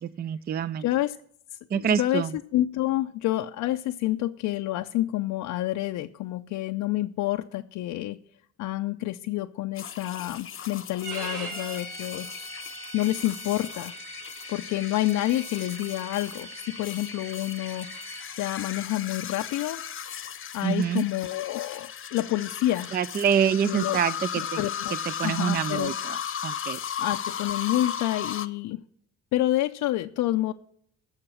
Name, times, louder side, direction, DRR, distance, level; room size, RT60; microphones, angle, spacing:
voice 1, 0.0-0.9 1.7-2.4 20.6-21.0 22.9-24.7 25.0-26.2 26.4-26.8, right 8 dB, 35° right, 18 dB, 0.4 m, -26 dB
voice 2, 0.8-1.2 1.7-2.2 2.5-8.2 8.6-12.3 12.9-13.9 14.5-17.9 18.4-19.8 20.5-22.9 23.7-24.0 24.6-24.9 25.2-25.9 27.0-28.8 29.3-30.5, left 15 dB, 85° left, 5 dB, 0.5 m, -28 dB
sound 1, 9.7-28.5, left 8 dB, 45° left, 0.8 m, -36 dB
Bowed string instrument, 11.0-18.3, right 3 dB, 80° right, 5.0 m, -41 dB
15.5 x 5.8 x 7.0 m, 0.66 s
cardioid pair, 90°, 30 cm